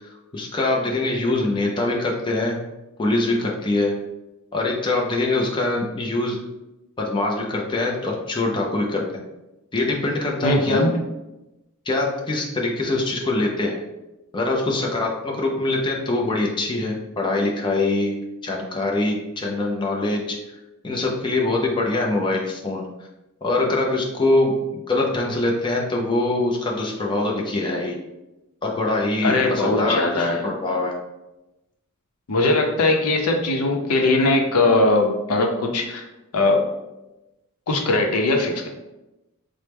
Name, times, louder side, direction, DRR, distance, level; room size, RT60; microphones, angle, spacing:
voice 1, 0.3-2.6 3.0-3.9 4.5-6.4 7.0-9.0 9.7-10.8 11.9-13.8 14.3-18.1 18.4-20.4 20.8-22.9 23.4-28.0 28.6-30.9, left 2 dB, 20° left, -1 dB, 0.4 m, -23 dB
voice 2, 10.4-10.9 29.2-30.4 32.3-36.0 36.3-36.6 37.7-38.7, left 2 dB, 85° left, 2 dB, 0.6 m, -20 dB
4.3 x 2.0 x 3.3 m, 0.97 s
head